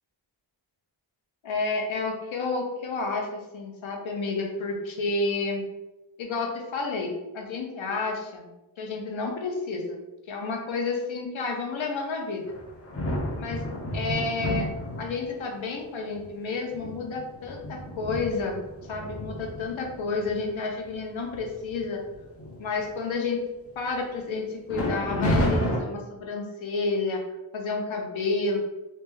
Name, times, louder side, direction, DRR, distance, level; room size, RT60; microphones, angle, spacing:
voice 1, 1.4-5.6 6.2-8.5 8.8-10.0 10.3-12.5 13.4-13.6 13.9-14.7 15.0-18.6 18.9-22.0 22.6-23.4 23.8-27.2 27.5-28.6, left 3 dB, 75° left, 1 dB, 0.9 m, -30 dB
sound 1, 12.5-15.4 16.1-16.2 16.7-20.3 20.8-21.0 21.3-21.7 22.1-22.9 24.7-25.8, left 1 dB, 30° left, 0.8 m, -31 dB
3.3 x 2.8 x 3.3 m, 1.0 s
wide cardioid pair, 90°, 47 cm